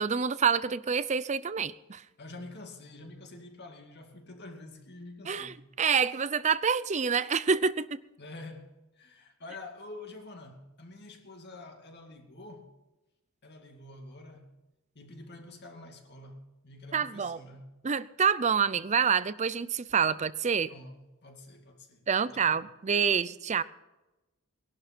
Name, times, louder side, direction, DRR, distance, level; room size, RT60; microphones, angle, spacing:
voice 1, 0.0-2.0 5.3-8.0 16.9-17.4 17.8-20.7 22.1-23.6, right 6 dB, 30° right, 0.5 m, -27 dB
voice 2, 2.2-5.6 8.2-12.7 13.4-14.5 14.9-17.7 20.7-22.6, left 2 dB, 50° left, 2.3 m, -47 dB
20.5 x 11.5 x 4.4 m
head